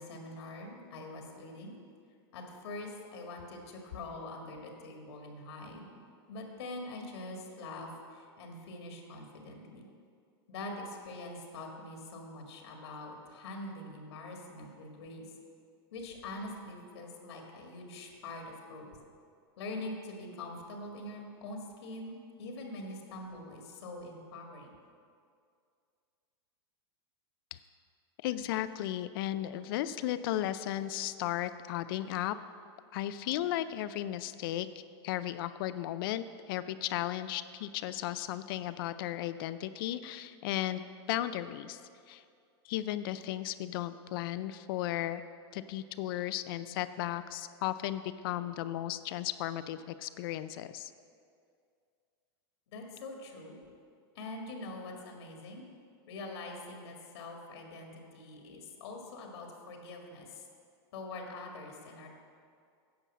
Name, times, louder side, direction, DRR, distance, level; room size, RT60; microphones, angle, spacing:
voice 1, 0.0-1.8 2.3-6.0 6.3-9.9 10.5-15.3 15.9-18.9 19.6-24.7 52.7-53.6 54.2-55.6 56.1-60.4 60.9-62.1, left 2 dB, 75° left, 2 dB, 1.8 m, -44 dB
voice 2, 28.2-32.4 32.9-34.7 35.0-40.8 41.1-41.8 42.1-42.2 42.6-45.2 45.5-50.9, left 13 dB, 55° left, 13 dB, 0.5 m, -35 dB
9.6 x 5.5 x 7.3 m, 2.3 s
supercardioid pair, 135°, 14 cm